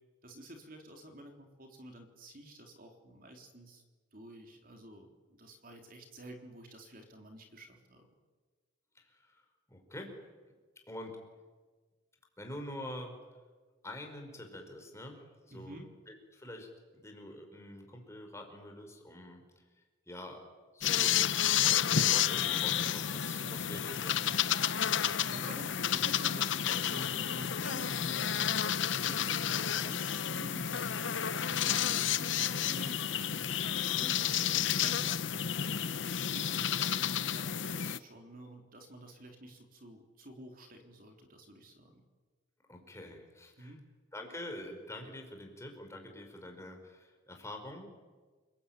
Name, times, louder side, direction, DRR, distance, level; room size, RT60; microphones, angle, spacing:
voice 1, 0.2-3.8 4.1-8.1 15.5-15.9 23.4-23.6 25.1-28.5 29.0-33.5 33.9-42.0 43.6-43.8, right 1 dB, 50° right, 4 dB, 3.7 m, -50 dB
voice 2, 8.9-10.1 10.9-11.2 12.4-13.1 13.8-15.8 16.1-16.7 17.0-19.6 20.1-20.4 20.7-21.3 21.6-24.3 42.7-43.7 44.1-47.9, left 1 dB, 15° left, 3 dB, 4.9 m, -46 dB
sound 1, 20.8-38.0, left 9 dB, 75° left, 0.8 m, -31 dB
29.0 x 20.5 x 9.2 m, 1.4 s
head